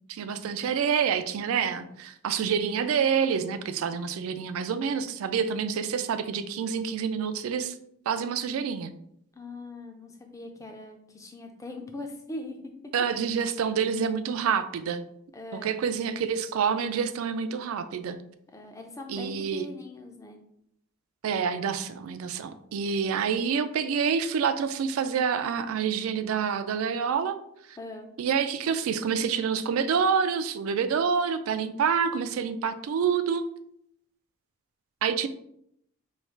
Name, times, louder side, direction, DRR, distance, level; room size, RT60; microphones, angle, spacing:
voice 1, 0.1-7.7 8.1-8.9 12.9-15.0 15.5-18.2 19.1-19.7 21.2-27.4 27.7-27.8 28.2-33.4 35.0-35.3, right 6 dB, 80° right, 11 dB, 0.3 m, -27 dB
voice 2, 9.3-12.6 15.3-15.8 18.5-20.4 27.8-28.1, left 2 dB, 15° left, 4 dB, 0.4 m, -41 dB
3.2 x 2.3 x 4.4 m, 0.73 s
head